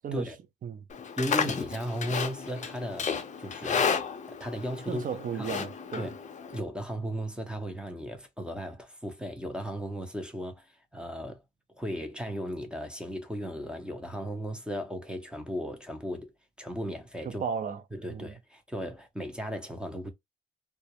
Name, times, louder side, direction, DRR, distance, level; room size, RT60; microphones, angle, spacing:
Livestock farm animals working animals, 0.9-6.6, left 6 dB, 40° left, 0.5 m, -32 dB
voice 1, 1.2-3.9 4.3-5.1 5.4-5.5 6.0-6.1 6.5-11.4 11.7-16.3 16.6-17.4 17.9-20.1, equal, 5° right, 0.7 m, -36 dB
voice 2, 4.9-6.1 17.3-17.8 18.1-18.3, right 7 dB, 45° right, 0.5 m, -34 dB
2.3 x 2.0 x 2.8 m
cardioid pair, 90°, 20 cm